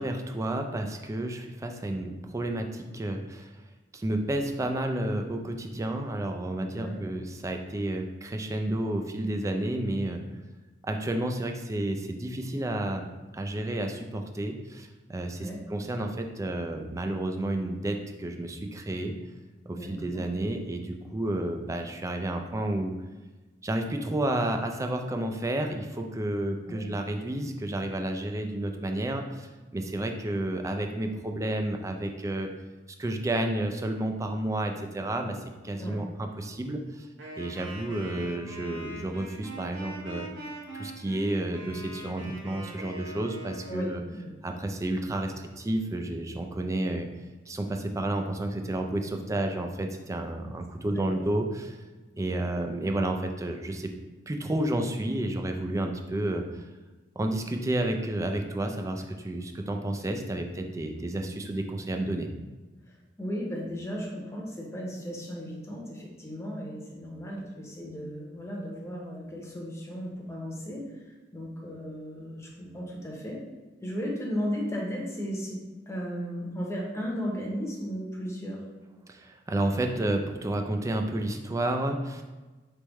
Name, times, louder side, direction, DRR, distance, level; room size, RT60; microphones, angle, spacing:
voice 1, 0.0-3.5 3.9-10.2 10.8-19.1 19.7-23.0 23.6-32.5 33.0-35.4 35.6-37.1 37.4-40.3 40.7-44.0 44.4-47.1 47.5-51.8 52.1-53.9 54.3-56.4 57.2-62.3 79.1-82.2, right 1 dB, 15° right, 4 dB, 0.3 m, -31 dB
voice 2, 19.7-20.2 26.7-26.8 35.8-36.0 43.7-44.3 50.9-51.2 63.2-70.8 71.3-73.3 73.8-75.6 75.9-78.6, equal, 15° left, -2 dB, 0.9 m, -35 dB
Wind instrument woodwind instrument, 37.2-43.8, right 2 dB, 80° right, 1.2 m, -42 dB
4.5 x 3.4 x 3.1 m, 1.2 s
head